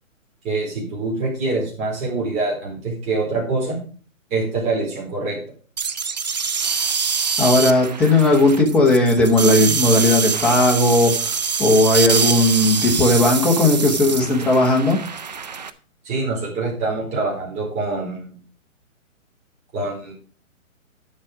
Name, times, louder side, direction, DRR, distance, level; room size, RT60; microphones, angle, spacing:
voice 1, 0.4-3.8 4.3-5.4 16.0-18.4 19.7-20.1, right 3 dB, 15° right, -3 dB, 4.2 m, -25 dB
sound 1, 5.8-15.7, right 6 dB, 35° right, 0.4 m, -24 dB
voice 2, 7.4-15.0, left 2 dB, 5° left, -2 dB, 1.0 m, -16 dB
10.0 x 7.6 x 4.9 m, 0.40 s
hypercardioid pair, 160°, 41 cm